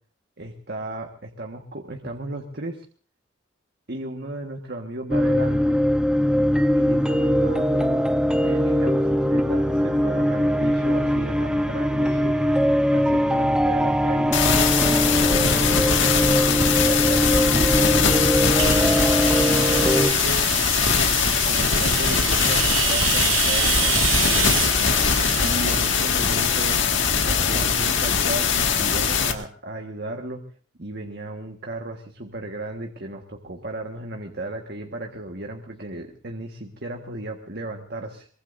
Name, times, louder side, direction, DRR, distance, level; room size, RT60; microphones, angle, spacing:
voice 1, 0.4-2.8 3.9-5.8 6.7-8.1 8.4-12.4 12.9-14.4 14.8-20.5 21.0-24.6 25.4-26.8 27.2-30.4 30.8-38.3, right 1 dB, 55° right, 3 dB, 1.6 m, -34 dB
sound 1, 5.1-20.1, equal, 5° right, 0.9 m, -21 dB
sound 2, 14.3-29.3, left 6 dB, 70° left, 2.0 m, -21 dB
sound 3, 18.6-28.2, right 12 dB, 85° right, 0.8 m, -29 dB
23.5 x 22.5 x 2.7 m, 0.43 s
head